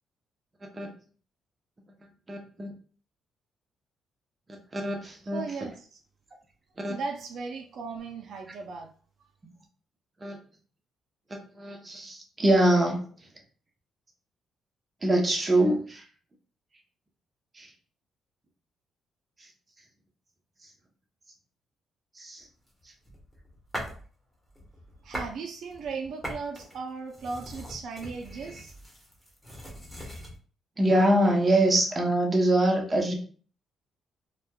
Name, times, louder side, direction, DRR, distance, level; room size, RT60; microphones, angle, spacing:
voice 1, 2.3-2.7 4.7-5.4 6.8-6.9 10.2-10.4 11.3-13.1 15.0-16.0 17.6-17.7 22.2-22.4 30.8-33.1, right 1 dB, 25° right, 2 dB, 0.7 m, -24 dB
voice 2, 5.3-6.0 6.9-8.9 25.0-28.7, right 4 dB, 70° right, 4 dB, 0.4 m, -37 dB
sound 1, 22.7-24.1 24.5-25.4 25.7-30.4, equal, 5° left, 1.0 m, -41 dB
3.1 x 2.1 x 2.2 m, 0.42 s
cardioid pair, 90°, 0 cm